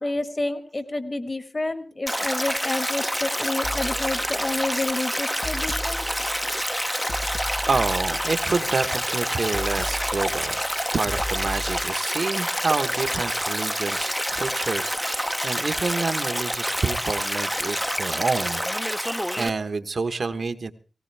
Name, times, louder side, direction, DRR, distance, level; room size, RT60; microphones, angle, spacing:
voice 1, 0.0-6.2, left 2 dB, 35° left, 10 dB, 1.6 m, -29 dB
Stream, 2.1-19.5, equal, ahead, 0.7 m, -27 dB
sound 1, 3.6-11.8, left 1 dB, 65° left, 1.5 m, -35 dB
voice 2, 7.7-10.6 10.9-18.6 19.4-20.7, right 4 dB, 60° right, 9 dB, 1.3 m, -28 dB
18.5 x 18.0 x 3.4 m, 0.38 s
cardioid pair, 60°, 0 cm